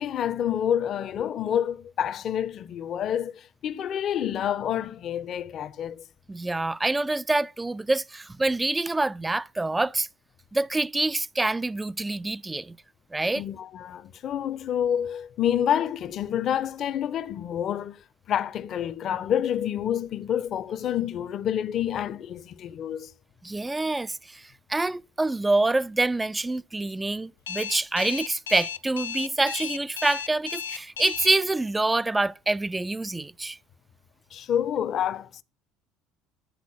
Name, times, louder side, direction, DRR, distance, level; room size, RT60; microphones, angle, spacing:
voice 1, 0.0-6.0 13.3-18.0 18.3-23.1 34.3-35.4, left 9 dB, 50° left, 0.7 m, -28 dB
voice 2, 6.3-10.1 10.5-12.8 13.1-13.4 23.4-33.6, right 2 dB, 15° right, 0.3 m, -26 dB
Alarm, 27.5-31.3, left 8 dB, 90° left, 0.4 m, -34 dB
10.0 x 4.0 x 6.3 m
hypercardioid pair, 65°, 0 cm